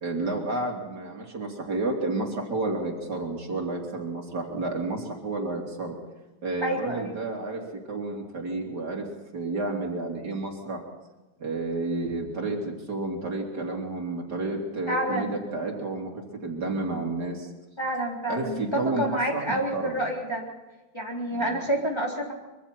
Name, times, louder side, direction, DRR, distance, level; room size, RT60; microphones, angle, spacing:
voice 1, 0.0-6.0 6.4-7.6 7.9-9.0 9.3-10.8 11.4-12.6 12.9-16.1 16.4-17.5 18.3-20.0 21.3-21.6, right 2 dB, 65° right, 1 dB, 3.6 m, -31 dB
voice 2, 6.6-7.1 14.9-15.4 17.8-20.4 20.9-22.3, right 1 dB, 15° left, -2 dB, 3.8 m, -28 dB
25.0 x 24.0 x 4.4 m, 1.1 s
omnidirectional pair, 1.9 m